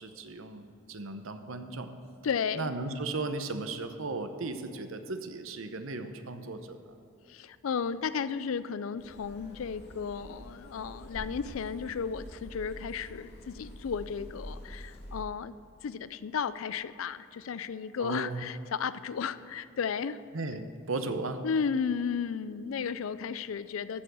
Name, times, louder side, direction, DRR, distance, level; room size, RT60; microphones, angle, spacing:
voice 1, 0.0-1.9 2.5-6.8 18.0-18.4 20.3-21.4, right 3 dB, 75° right, 8 dB, 0.9 m, -36 dB
voice 2, 2.2-2.7 7.3-15.6 15.8-20.2 21.4-24.0, left 6 dB, 80° left, 15 dB, 0.4 m, -34 dB
sound 1, 9.0-15.2, equal, 55° left, 2.2 m, -46 dB
14.5 x 6.9 x 6.3 m, 2.6 s
head